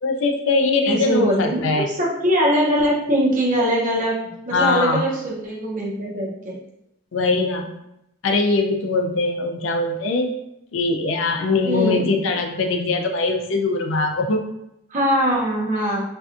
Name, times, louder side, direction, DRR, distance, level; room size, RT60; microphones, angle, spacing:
voice 1, 0.0-1.9 4.5-5.0 7.1-7.7 8.2-10.3 10.7-14.4, left 3 dB, 80° left, 3 dB, 0.4 m, -21 dB
voice 2, 0.9-6.5 11.6-12.0 14.9-16.0, equal, 45° right, -4 dB, 0.6 m, -22 dB
2.5 x 2.3 x 2.4 m, 0.84 s
head